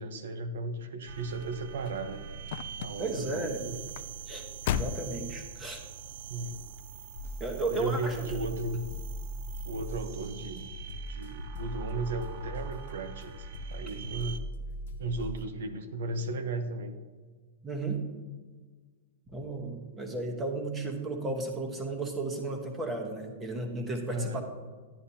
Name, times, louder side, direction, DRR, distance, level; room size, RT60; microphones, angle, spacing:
voice 1, 0.0-2.3 2.8-3.8 6.3-6.6 7.7-8.8 9.6-10.7 11.1-14.4 15.0-16.9 24.1-24.4, right 3 dB, 80° right, 8 dB, 1.0 m, -35 dB
sound 1, 1.1-14.4, right 7 dB, 55° right, 0.6 m, -45 dB
sound 2, 1.2-6.0 6.6-7.0 7.4-7.5, left 9 dB, 50° left, 0.4 m, -37 dB
voice 2, 3.0-3.7 4.3-4.5 4.7-5.8 7.4-8.5 17.6-18.0 19.3-24.4, right 2 dB, 10° right, 3 dB, 1.1 m, -34 dB
sound 3, 7.2-15.5, equal, 75° left, 0.9 m, -40 dB
10.5 x 10.0 x 2.8 m, 1.4 s
supercardioid pair, 165°, 0 cm